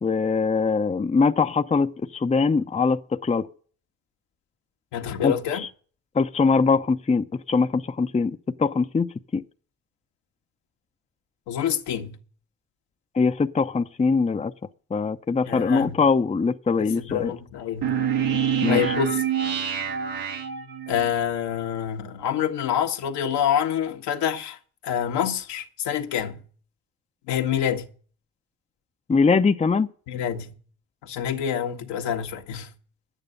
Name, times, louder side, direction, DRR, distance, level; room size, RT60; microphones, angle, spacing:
voice 1, 0.0-3.5 5.2-5.7 6.1-9.4 13.1-14.5 14.9-17.3 18.6-18.8 29.1-29.9, left 4 dB, 15° left, 0.7 m, -22 dB
voice 2, 4.9-5.6 11.5-12.2 15.5-16.0 16.9-17.9 18.7-19.2 20.9-24.6 24.8-26.4 27.3-27.9 30.1-30.6 31.0-32.7, left 9 dB, 75° left, 1.5 m, -27 dB
sound 1, 17.8-21.1, right 8 dB, 80° right, 1.7 m, -26 dB
11.0 x 9.1 x 6.7 m
hypercardioid pair, 55°, 42 cm